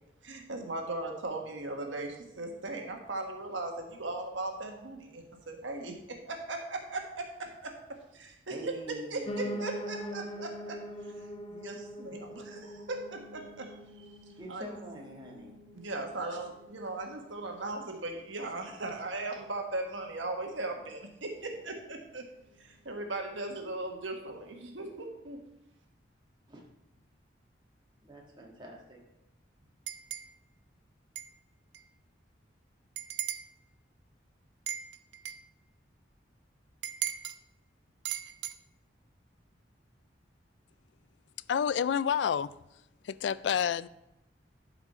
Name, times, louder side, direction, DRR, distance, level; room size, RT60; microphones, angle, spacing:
voice 1, 0.2-14.6 15.7-22.3 22.6-25.4, right 2 dB, 90° right, 3 dB, 1.4 m, -38 dB
voice 2, 8.5-9.6 12.1-12.2 14.4-15.6 26.5-26.6 28.0-29.0, right 1 dB, 25° right, -2 dB, 1.5 m, -45 dB
Piano, 9.3-18.4 18.8-19.9 20.2-20.3 20.5-20.6 20.9-21.0 21.5-21.6, equal, 35° left, 0.6 m, -43 dB
sound 1, 29.9-30.3 31.2-31.3 31.7-31.8 33.0-33.5 34.7-35.5 36.8-37.4 38.1-38.5, right 12 dB, 65° right, 0.4 m, -37 dB
voice 3, 41.5-42.5 43.0-43.9, left 8 dB, 75° left, 18 dB, 0.3 m, -28 dB
11.5 x 4.9 x 4.2 m, 0.89 s
head